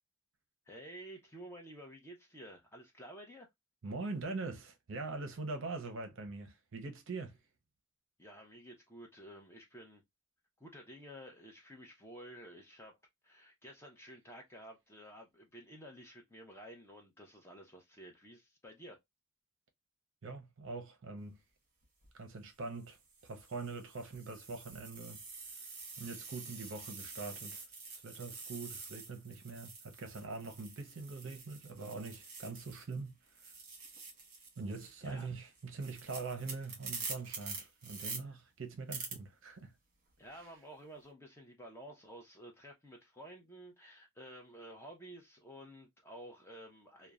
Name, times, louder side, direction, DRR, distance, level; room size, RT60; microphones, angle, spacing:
voice 1, 0.7-3.5 8.2-10.0 10.6-19.0 35.0-35.3 38.3-38.4 40.2-47.1, right 1 dB, 10° left, 0.6 m, -52 dB
voice 2, 3.8-7.4 20.2-21.4 22.2-23.0 23.2-25.2 26.0-27.6 27.9-33.1 34.6-39.7, right 3 dB, 60° right, 0.6 m, -43 dB
sound 1, 21.8-22.1 22.8-33.0 33.3-38.2 38.9-39.1, right 4 dB, 35° right, 1.1 m, -47 dB
2.9 x 2.1 x 2.3 m
head